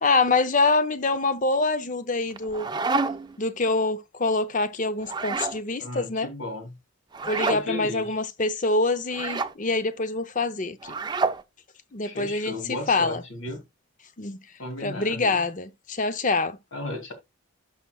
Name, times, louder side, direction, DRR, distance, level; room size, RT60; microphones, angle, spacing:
voice 1, 0.0-2.7 3.4-6.3 7.3-10.9 11.9-13.2 14.2-14.4 14.8-16.6, left 3 dB, 35° left, 0.7 m, -25 dB
sound 1, 2.3-3.4 5.0-5.6 7.1-7.6 9.1-9.5 10.8-11.4, right 4 dB, 20° right, 0.4 m, -28 dB
voice 2, 5.8-6.7 7.5-8.2 12.0-13.6 14.6-15.4 16.7-17.1, left 2 dB, 70° left, 2.6 m, -35 dB
11.5 x 5.7 x 2.3 m
head